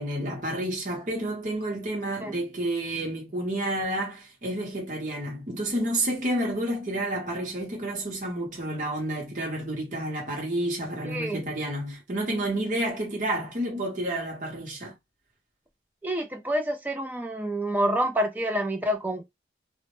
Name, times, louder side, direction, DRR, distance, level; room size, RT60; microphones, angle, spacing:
voice 1, 0.0-14.9, right 1 dB, 45° right, 0.8 m, -30 dB
voice 2, 11.1-11.4 16.0-19.2, right 1 dB, 10° right, 0.3 m, -28 dB
2.0 x 2.0 x 3.0 m
head